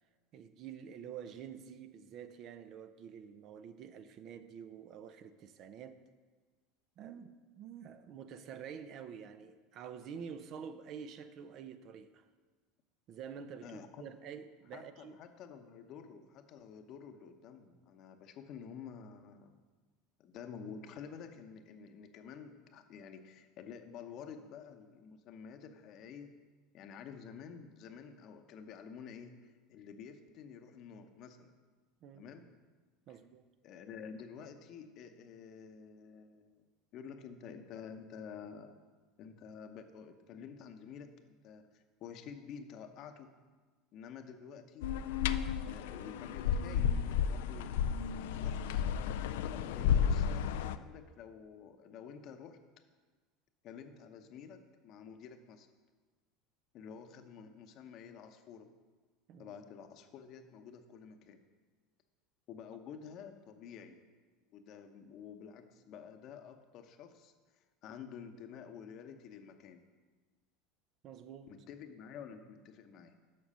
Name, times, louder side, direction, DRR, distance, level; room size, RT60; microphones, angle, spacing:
voice 1, 0.3-6.0 7.0-12.2 13.1-15.2 32.0-32.3 33.1-33.5 59.3-59.5 71.0-71.5, right 7 dB, 50° right, 11 dB, 0.6 m, -48 dB
voice 2, 13.6-14.1 14.7-19.6 20.2-26.4 26.7-31.5 32.1-32.5 33.1-33.2 33.6-36.6 36.9-38.8 39.2-43.3 43.9-44.9 45.6-47.7 48.3-48.8 49.5-52.6 53.6-55.7 56.7-58.7 59.4-61.4 62.5-64.0 64.5-67.3 67.8-69.8 71.5-73.2, left 7 dB, 55° left, 7 dB, 0.8 m, -50 dB
sound 1, 44.8-50.8, left 8 dB, 75° left, 0.3 m, -32 dB
7.5 x 6.0 x 5.5 m, 1.4 s
hypercardioid pair, 90°, 0 cm